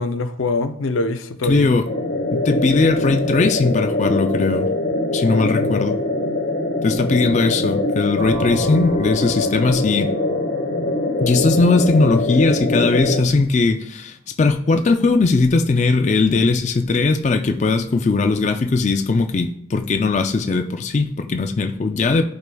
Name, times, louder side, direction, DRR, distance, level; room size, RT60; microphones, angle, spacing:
voice 1, 0.0-1.7 5.2-5.9, left 3 dB, 90° left, 8 dB, 0.5 m, -24 dB
voice 2, 1.4-1.9 2.3-4.7 5.1-6.0 6.8-10.1 11.2-22.2, left 3 dB, 35° left, 6 dB, 0.3 m, -19 dB
sound 1, 1.8-13.2, left 2 dB, 70° left, 1.4 m, -23 dB
sound 2, 8.2-11.9, equal, 80° right, 1.9 m, -36 dB
12.5 x 4.7 x 2.3 m, 0.73 s
head